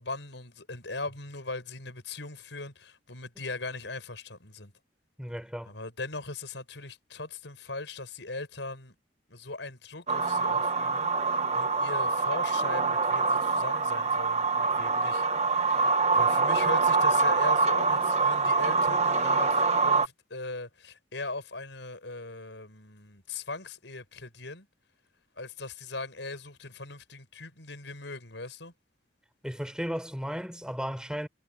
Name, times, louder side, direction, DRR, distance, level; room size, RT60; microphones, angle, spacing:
voice 1, 0.0-4.7 5.7-8.9 9.3-15.2 15.5-24.7 25.4-28.7, left 3 dB, 80° left, 5.6 m, -39 dB
voice 2, 5.2-5.7 29.4-31.3, equal, 5° right, 4.8 m, -35 dB
sound 1, 10.1-20.1, right 4 dB, 35° right, 1.4 m, -25 dB
head